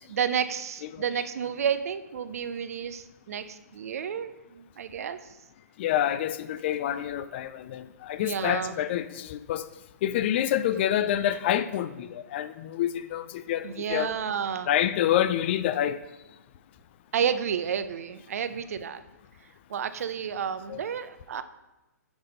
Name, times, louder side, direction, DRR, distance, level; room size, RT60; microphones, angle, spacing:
voice 1, 0.1-5.2 8.2-8.8 13.6-14.7 17.1-19.0 19.7-21.4, right 8 dB, 60° right, 0.5 m, -31 dB
voice 2, 5.8-9.6 10.0-14.1 14.7-16.0 20.7-20.8, left 11 dB, 40° left, 0.4 m, -27 dB
6.2 x 5.1 x 5.3 m
figure-of-eight pair, 125°, 9 cm